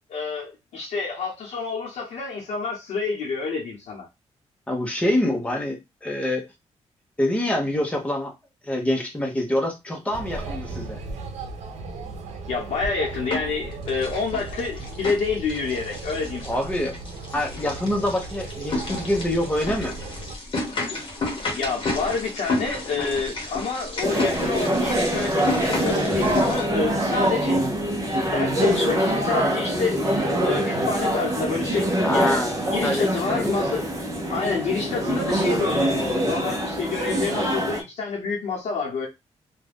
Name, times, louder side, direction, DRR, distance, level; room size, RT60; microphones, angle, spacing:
voice 1, 0.1-4.1 12.5-16.7 21.5-27.6 28.3-30.0 30.4-32.4 32.7-33.8 34.3-39.1, left 4 dB, 75° left, 0.8 m, -28 dB
voice 2, 4.7-6.4 7.2-8.3 8.6-11.0 16.4-17.0 17.3-20.0 32.0-33.5, left 1 dB, 10° left, 0.7 m, -25 dB
sound 1, 10.1-20.4, right 3 dB, 90° right, 0.6 m, -36 dB
sound 2, 12.7-13.6 13.9-26.6, left 2 dB, 45° left, 0.9 m, -32 dB
sound 3, 24.0-37.8, right 1 dB, 30° right, 0.6 m, -24 dB
2.5 x 2.2 x 3.4 m
wide cardioid pair, 175°, 12 cm